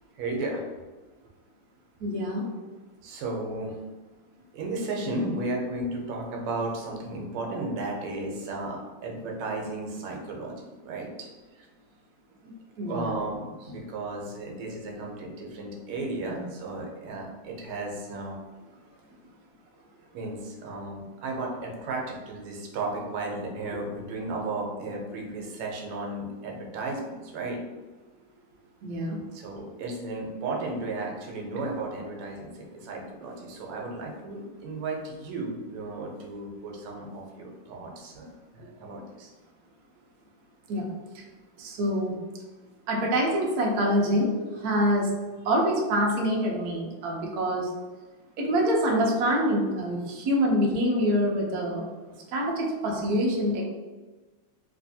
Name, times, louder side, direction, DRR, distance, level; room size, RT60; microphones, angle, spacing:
voice 1, 0.2-0.6 3.0-3.8 4.5-11.3 12.9-18.4 20.1-27.6 29.3-38.3 38.5-39.3, right 2 dB, 90° right, 0 dB, 1.6 m, -34 dB
voice 2, 2.0-2.5 12.8-13.1 28.8-29.2 40.7-40.9 41.1-41.2 41.6-42.2 42.9-45.1 45.4-47.7 48.4-51.8 52.3-53.7, equal, 70° right, -1 dB, 0.9 m, -25 dB
3.3 x 3.3 x 2.7 m, 1.3 s
omnidirectional pair, 2.4 m